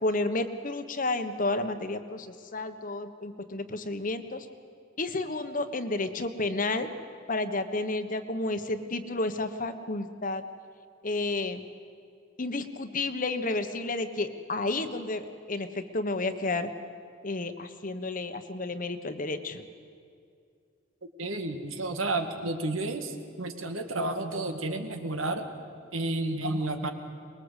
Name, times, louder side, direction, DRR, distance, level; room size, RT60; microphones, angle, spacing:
voice 1, 0.0-2.3 2.5-4.4 5.0-6.9 7.3-10.4 11.0-11.6 12.4-16.7 17.2-19.6, left 2 dB, 40° left, 9 dB, 1.2 m, -31 dB
voice 2, 21.2-25.5 25.9-26.9, right 2 dB, 85° right, 6 dB, 2.1 m, -31 dB
24.0 x 21.5 x 8.3 m, 2.3 s
head